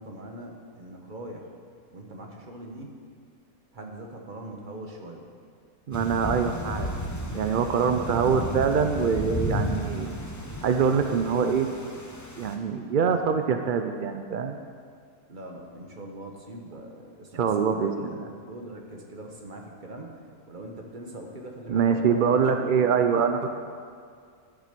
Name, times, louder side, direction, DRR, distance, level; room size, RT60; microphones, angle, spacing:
voice 1, 0.0-1.5 1.9-2.9 3.7-5.3 7.7-8.0 13.0-13.2 15.3-20.1 20.5-23.2, right 1 dB, 35° right, 2 dB, 1.3 m, -41 dB
Thunder / Rain, 5.9-12.6, left 1 dB, 15° left, 0.7 m, -33 dB
voice 2, 5.9-6.9 7.3-10.1 10.6-11.7 12.4-14.6 17.3-18.3 21.7-23.6, right 6 dB, 65° right, 6 dB, 0.5 m, -24 dB
11.5 x 7.7 x 6.8 m, 2.1 s
omnidirectional pair, 1.6 m